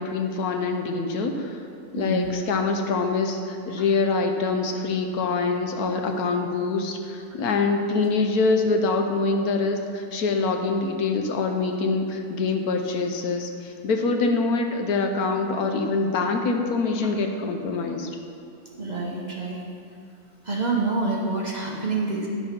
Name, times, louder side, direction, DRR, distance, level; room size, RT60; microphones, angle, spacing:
voice 1, 0.0-1.6 1.9-18.1, left 3 dB, 75° left, 4 dB, 1.3 m, -25 dB
voice 2, 1.9-2.3 18.6-19.6 20.4-22.3, right 3 dB, 35° right, -2 dB, 1.0 m, -27 dB
10.0 x 6.4 x 5.2 m, 2.4 s
omnidirectional pair, 1.6 m